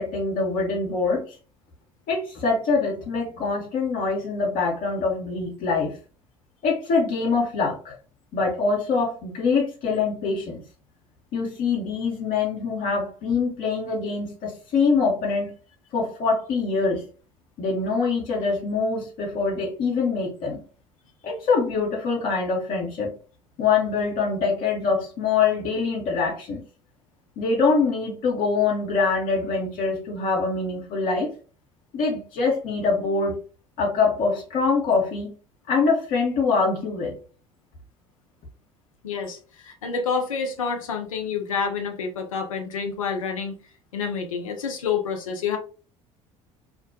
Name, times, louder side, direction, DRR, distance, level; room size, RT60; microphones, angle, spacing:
voice 1, 0.0-1.3 2.1-6.0 6.6-7.9 8.3-10.6 11.3-15.5 15.9-17.0 17.6-20.6 21.2-23.1 23.6-26.6 27.4-31.3 31.9-33.3 33.8-35.3 35.7-37.2, left 4 dB, 55° left, -1 dB, 0.8 m, -24 dB
voice 2, 39.0-43.6 43.9-45.6, left 6 dB, 80° left, 4 dB, 0.5 m, -28 dB
2.5 x 2.1 x 2.6 m, 0.37 s
figure-of-eight pair, 60°, 17 cm